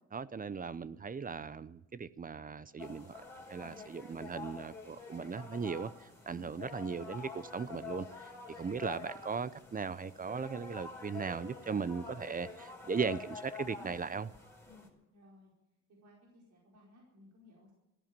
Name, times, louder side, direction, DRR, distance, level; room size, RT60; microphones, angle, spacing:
voice 1, 0.1-3.1 3.5-14.3, right 5 dB, 30° right, 0.7 m, -38 dB
sound 1, 2.8-14.9, left 5 dB, 10° left, 4.7 m, -48 dB
voice 2, 14.7-15.5 16.0-17.7, left 2 dB, 70° right, 4.7 m, -59 dB
14.5 x 11.0 x 8.9 m
cardioid pair, 90°, 30 cm